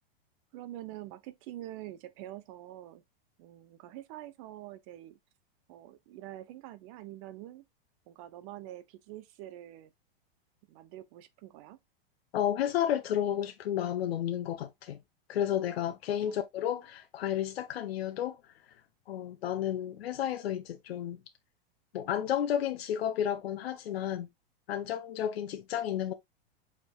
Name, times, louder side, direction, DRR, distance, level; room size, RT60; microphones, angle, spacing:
voice 1, 0.5-3.0 3.4-5.2 5.7-7.6 8.1-9.9 10.7-11.8 16.3-16.4, right 14 dB, 35° right, 0.5 m, -46 dB
voice 2, 12.3-15.0 15.3-18.4 19.1-21.2 21.9-24.3 24.7-26.1, left 10 dB, 85° left, 0.8 m, -32 dB
6.4 x 3.6 x 2.3 m
supercardioid pair, 155°, 30 cm